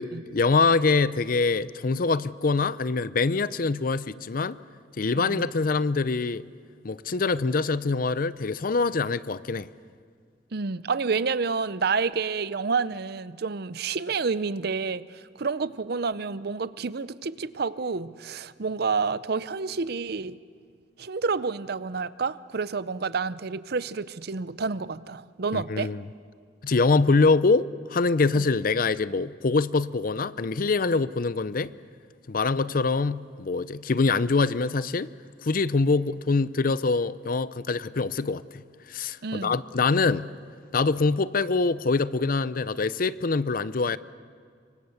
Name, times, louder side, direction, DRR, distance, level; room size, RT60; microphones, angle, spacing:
voice 1, 0.0-4.6 5.0-6.4 6.8-9.7 25.5-26.0 26.6-31.7 32.3-35.1 35.4-38.6 38.9-40.3 40.7-44.0, left 4 dB, 50° left, 0.6 m, -24 dB
voice 2, 5.1-5.5 10.5-20.4 21.0-25.9 28.3-28.4 39.2-39.5, right 4 dB, 60° right, 0.7 m, -29 dB
26.0 x 24.5 x 7.1 m
head